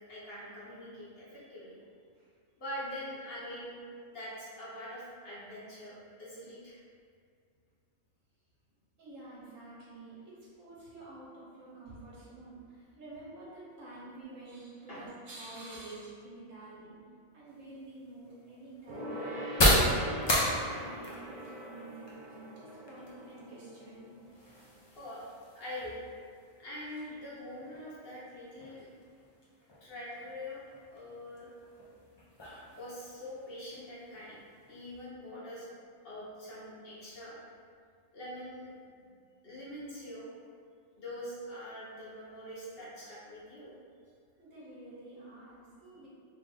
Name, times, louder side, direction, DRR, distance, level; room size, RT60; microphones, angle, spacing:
voice 1, 0.1-1.8 2.6-3.7 4.1-6.8 14.9-15.0 24.9-25.2 25.5-26.0 26.6-28.9 29.8-30.6 30.9-31.5 32.7-34.4 34.7-35.7 36.0-37.3 38.1-38.7 39.0-39.1 39.4-40.3 41.0-43.7 45.9-46.0, left 1 dB, 50° left, -9 dB, 1.2 m, -44 dB
voice 2, 9.0-17.0 17.3-19.3 20.0-24.1 44.4-46.1, right 2 dB, 80° right, -7 dB, 1.5 m, -49 dB
sound 1, 17.5-35.1, left 1 dB, 35° left, 0.4 m, -36 dB
Gong, 18.9-24.8 25.0-25.1, equal, 50° right, 0.8 m, -43 dB
3.3 x 2.5 x 3.9 m, 2.2 s
omnidirectional pair, 1.3 m